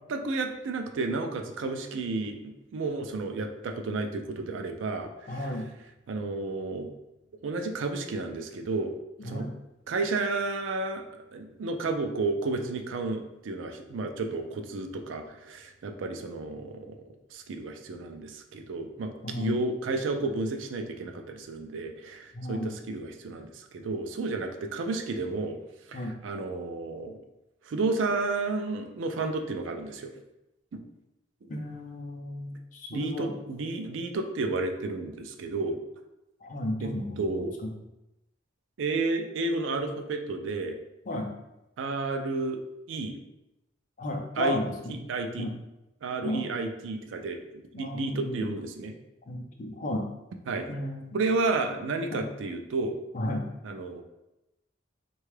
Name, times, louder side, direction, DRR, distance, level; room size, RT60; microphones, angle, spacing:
voice 1, 0.1-5.1 6.1-6.9 7.4-8.9 9.2-9.4 9.9-17.0 17.3-25.6 25.9-27.2 27.7-30.1 30.7-30.8 32.9-35.8 36.8-36.9 37.2-37.5 38.8-40.8 41.8-42.6 42.9-43.2 44.4-44.6 45.1-45.5 46.0-47.4 47.8-48.9 50.5-50.7 51.1-53.0 53.6-54.0, right 3 dB, 80° right, 5 dB, 0.4 m, -31 dB
voice 2, 5.3-5.7 9.2-9.5 19.2-19.5 22.3-22.7 25.9-26.1 31.5-33.4 36.4-37.7 41.1-41.3 44.0-45.0 45.4-45.5 46.2-46.5 47.7-48.5 49.3-50.1 50.7-51.2 52.1-52.3 53.1-53.5, left 1 dB, 40° left, 2 dB, 0.5 m, -33 dB
3.5 x 2.3 x 3.2 m, 0.93 s
head